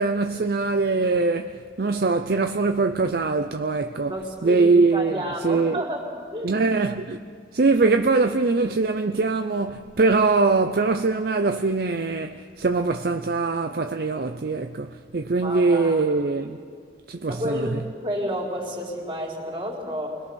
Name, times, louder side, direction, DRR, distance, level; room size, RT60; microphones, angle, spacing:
voice 1, 0.0-4.1 4.4-5.8 6.4-7.2 7.5-16.6 17.1-17.8, right 3 dB, 55° right, 0.6 m, -22 dB
voice 2, 4.1-6.6 15.4-16.0 17.3-20.2, equal, 30° right, 3.8 m, -31 dB
29.0 x 21.0 x 6.3 m
head